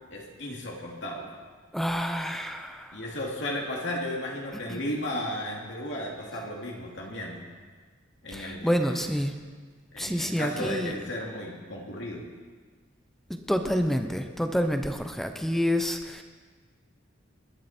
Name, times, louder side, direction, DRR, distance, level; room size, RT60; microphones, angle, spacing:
voice 1, 0.1-1.3 2.9-7.5 8.2-9.0 9.9-12.2, left 1 dB, 60° left, -2 dB, 2.8 m, -34 dB
voice 2, 1.7-3.0 4.7-4.9 8.3-9.3 10.0-11.0 13.3-16.2, equal, ahead, 6 dB, 0.8 m, -28 dB
21.5 x 11.5 x 4.5 m, 1.5 s
head